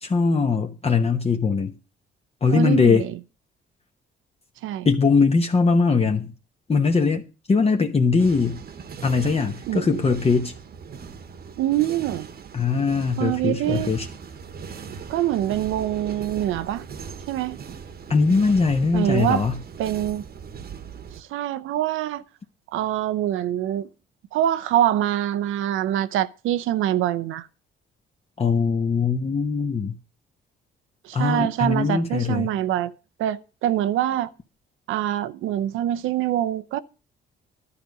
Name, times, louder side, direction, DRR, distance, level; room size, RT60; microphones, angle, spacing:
voice 1, 0.0-1.7 2.4-3.1 4.8-6.3 6.7-8.6 9.0-10.5 12.5-14.1 18.1-19.6 28.4-30.0 31.1-32.5, left 4 dB, 30° left, 1.1 m, -21 dB
voice 2, 2.5-3.2 4.6-4.9 9.7-10.0 11.6-12.3 13.2-13.9 15.1-16.8 17.3-17.6 18.9-19.5 19.8-20.2 21.1-22.2 22.7-23.9 24.3-27.5 31.0-32.9 33.2-34.3 34.9-36.8, right 12 dB, 85° right, 0.7 m, -24 dB
sound 1, 8.2-21.2, right 6 dB, 50° right, 1.1 m, -39 dB
11.5 x 5.2 x 8.2 m
cardioid pair, 90°, 20 cm